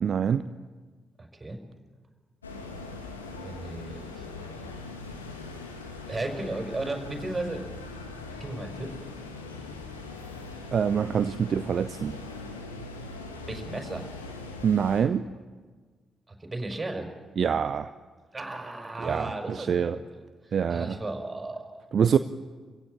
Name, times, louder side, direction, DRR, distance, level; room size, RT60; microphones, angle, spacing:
voice 1, 0.0-0.4 10.7-12.1 14.6-15.3 17.4-17.9 19.0-20.0 20.5-21.0 21.9-22.2, right 7 dB, 55° right, 12 dB, 0.7 m, -25 dB
voice 2, 1.2-1.6 3.3-4.2 6.1-7.6 8.4-8.9 13.5-14.1 16.3-17.1 18.3-21.9, right 2 dB, 25° right, 4 dB, 5.2 m, -35 dB
sound 1, 2.4-15.0, left 3 dB, 90° left, 1.7 m, -41 dB
27.5 x 16.0 x 8.8 m, 1.4 s
figure-of-eight pair, 40°, 0 cm